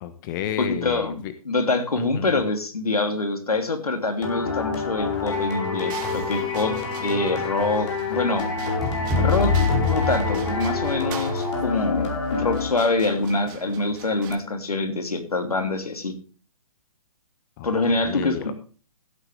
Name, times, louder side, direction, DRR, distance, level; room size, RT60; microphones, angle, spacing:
voice 1, 0.0-1.3 2.0-2.5 17.6-17.7 18.0-18.5, left 11 dB, 35° left, 11 dB, 1.1 m, -32 dB
voice 2, 0.6-8.5 9.2-16.1 17.6-18.5, left 3 dB, 85° left, 6 dB, 3.1 m, -25 dB
sound 1, 4.2-13.1, left 4 dB, 50° left, 5.0 m, -28 dB
sound 2, 5.9-14.4, right 8 dB, 35° right, 2.5 m, -41 dB
sound 3, 8.8-11.1, left 4 dB, ahead, 3.5 m, -24 dB
16.0 x 9.0 x 3.5 m, 0.37 s
figure-of-eight pair, 135°, 19 cm